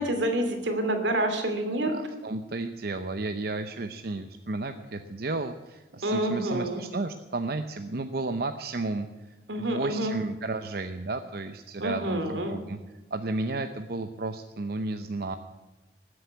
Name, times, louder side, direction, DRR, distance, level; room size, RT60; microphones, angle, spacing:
voice 1, 0.0-1.9 6.0-6.8 9.5-10.1 11.8-12.5, right 1 dB, 90° right, 6 dB, 2.6 m, -28 dB
voice 2, 1.8-9.1 9.6-12.8 13.1-15.4, right 2 dB, 60° right, 8 dB, 0.7 m, -33 dB
19.0 x 8.0 x 8.3 m, 1.1 s
head